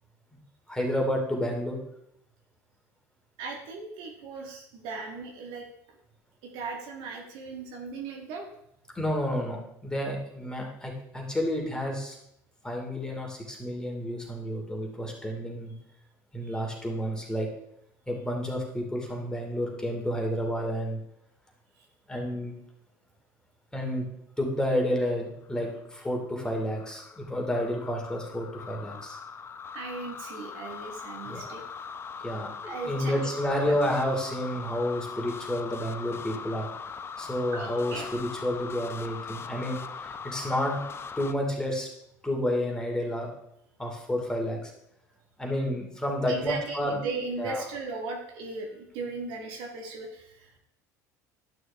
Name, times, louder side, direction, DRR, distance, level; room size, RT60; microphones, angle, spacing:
voice 1, 0.7-1.8 8.9-12.2 12.6-15.7 16.3-17.5 18.1-21.0 22.1-22.5 23.7-24.1 24.4-29.2 31.2-31.4 32.2-36.7 37.2-40.8 41.2-41.9 42.2-43.3 43.8-44.7 45.4-47.0 47.4-47.6, equal, 10° left, -1 dB, 2.7 m, -30 dB
voice 2, 3.4-5.7 6.4-8.5 16.4-16.6 29.7-31.6 32.6-33.2 33.6-33.8 37.5-38.1 46.3-50.6, right 4 dB, 65° right, 2 dB, 1.7 m, -37 dB
sound 1, 25.4-41.3, left 6 dB, 30° left, 0.6 m, -41 dB
11.5 x 6.2 x 3.6 m, 0.77 s
hypercardioid pair, 75°, 9 cm